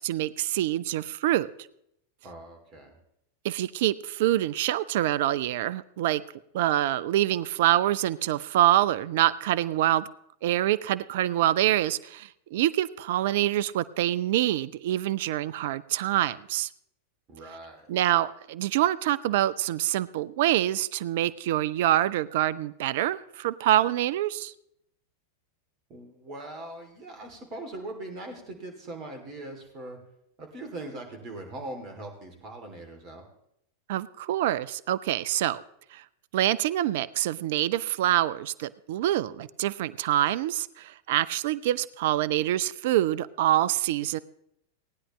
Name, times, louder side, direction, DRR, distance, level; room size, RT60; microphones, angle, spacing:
voice 1, 0.0-1.5 3.4-6.2 6.5-10.1 10.4-16.7 17.9-24.5 33.9-35.6 35.9-36.0 36.3-44.2, right 13 dB, 55° right, 17 dB, 0.4 m, -26 dB
voice 2, 2.2-3.0 17.3-17.9 25.9-30.0 30.4-33.2, right 2 dB, 35° right, 4 dB, 2.8 m, -41 dB
18.5 x 9.9 x 3.2 m, 0.76 s
figure-of-eight pair, 90°, 0 cm